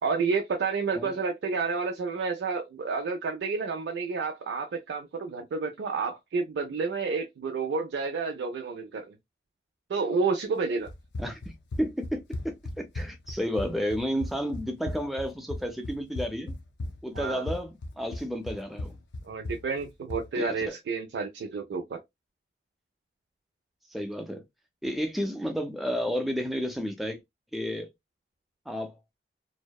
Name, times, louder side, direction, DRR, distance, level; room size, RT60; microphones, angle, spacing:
voice 1, 0.0-9.1 9.9-10.9 17.1-17.5 19.2-22.0, right 4 dB, 80° right, 0.4 m, -30 dB
Run, 10.9-20.3, left 2 dB, 85° left, 0.4 m, -37 dB
voice 2, 11.8-16.5 17.0-19.0 20.3-20.7 23.9-24.4 24.8-27.2 27.5-27.9 28.7-29.0, equal, ahead, 0.4 m, -31 dB
2.6 x 2.1 x 2.2 m
head